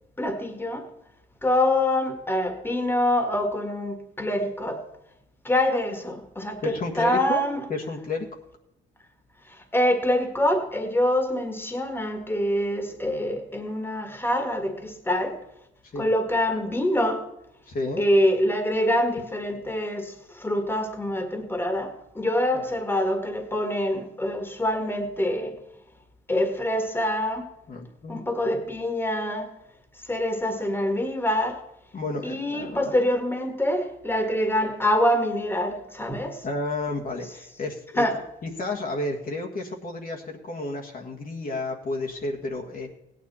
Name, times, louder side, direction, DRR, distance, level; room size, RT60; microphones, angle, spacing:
voice 1, 0.2-0.9 1.4-4.8 5.4-7.6 9.5-15.4 16.0-17.3 18.0-25.6 26.3-27.5 28.1-29.5 30.0-31.6 32.2-36.5 38.0-38.2, left 1 dB, 10° left, 5 dB, 1.9 m, -25 dB
voice 2, 6.6-7.4 7.7-8.3 15.9-16.1 17.7-18.0 22.5-22.6 27.7-28.2 31.9-32.9 36.4-38.1 38.4-42.9, left 2 dB, 45° left, 0 dB, 1.7 m, -31 dB
16.5 x 9.4 x 4.3 m, 0.84 s
cardioid pair, 90°, 20 cm